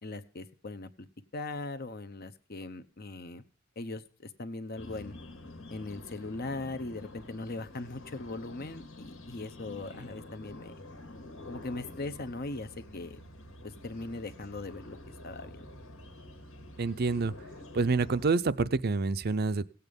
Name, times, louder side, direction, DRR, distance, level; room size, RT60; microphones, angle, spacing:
voice 1, 0.0-1.1 1.3-3.4 3.8-5.1 5.7-10.7 11.5-13.2 13.6-15.0 15.2-15.7, left 2 dB, 50° left, 12 dB, 0.9 m, -39 dB
sound 1, 4.8-18.3, left 1 dB, 75° left, 2.0 m, -48 dB
voice 2, 16.8-17.3 17.7-19.7, right 4 dB, 50° right, 14 dB, 0.6 m, -27 dB
17.0 x 8.3 x 5.2 m, 0.43 s
head